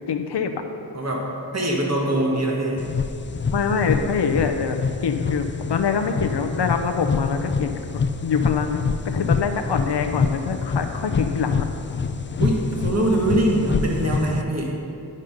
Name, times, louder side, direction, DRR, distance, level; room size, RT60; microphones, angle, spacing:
voice 1, 0.1-0.5 3.5-7.8 8.2-11.7, left 6 dB, 65° left, 6 dB, 0.8 m, -24 dB
voice 2, 0.9-2.8 12.4-14.8, right 1 dB, 35° right, -1 dB, 1.7 m, -23 dB
sound 1, 2.8-14.4, left 5 dB, 30° left, 0.4 m, -26 dB
11.0 x 5.3 x 5.3 m, 2.7 s
cardioid pair, 50°, 44 cm